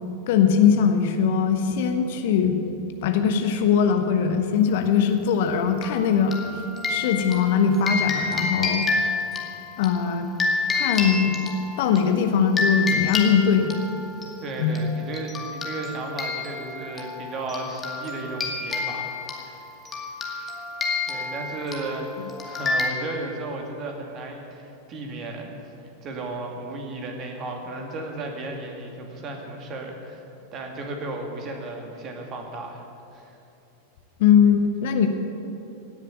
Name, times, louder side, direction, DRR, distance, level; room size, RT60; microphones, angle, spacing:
voice 1, 0.3-2.6 3.0-6.4 6.9-8.9 9.8-10.3 10.7-11.4 11.8-13.7 14.6-14.8 34.2-35.1, left 7 dB, 50° left, 6 dB, 1.2 m, -21 dB
sound 1, 5.8-12.0 12.6-14.3 14.8-14.9 15.1-22.9, left 3 dB, 20° left, 2.1 m, -29 dB
voice 2, 14.4-19.6 21.1-25.6 26.0-30.2 30.5-32.8 33.1-33.3, right 2 dB, 30° right, 2 dB, 2.5 m, -34 dB
17.0 x 7.4 x 9.4 m, 2.7 s
figure-of-eight pair, 90°, 0 cm